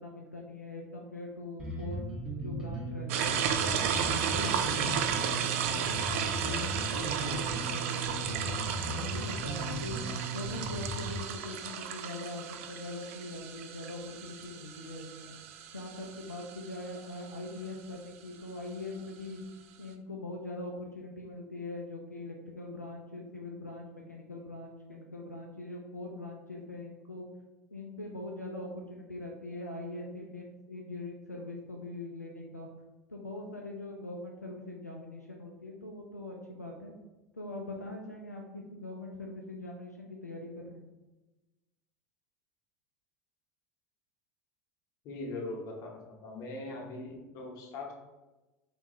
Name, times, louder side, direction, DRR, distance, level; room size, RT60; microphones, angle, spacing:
voice 1, 0.0-2.0 2.3-4.0 4.3-10.0 10.3-15.3 15.7-19.4 19.8-27.3 27.7-32.7 33.1-36.9 37.3-40.8, left 2 dB, 90° left, 0 dB, 0.4 m, -42 dB
Bass guitar, 1.6-11.2, right 1 dB, 10° right, 1.2 m, -37 dB
sound 1, 3.1-17.5, right 8 dB, 55° right, 0.3 m, -34 dB
voice 2, 45.0-47.9, left 2 dB, 45° left, 1 dB, 0.9 m, -40 dB
3.6 x 3.4 x 2.9 m, 1.1 s
figure-of-eight pair, 75°, 8 cm